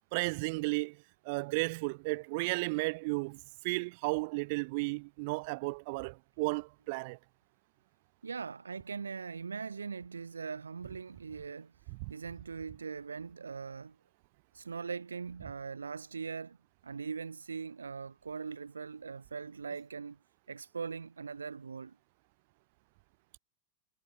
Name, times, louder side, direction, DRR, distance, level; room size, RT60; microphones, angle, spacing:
voice 1, 0.1-1.0 1.2-7.2, right 27 dB, 45° right, 5.7 m, -34 dB
voice 2, 8.2-11.7 12.1-13.9 14.5-16.6 16.8-20.2 20.5-22.0, right 5 dB, 75° right, 4.9 m, -41 dB
figure-of-eight pair, 90°, 0 cm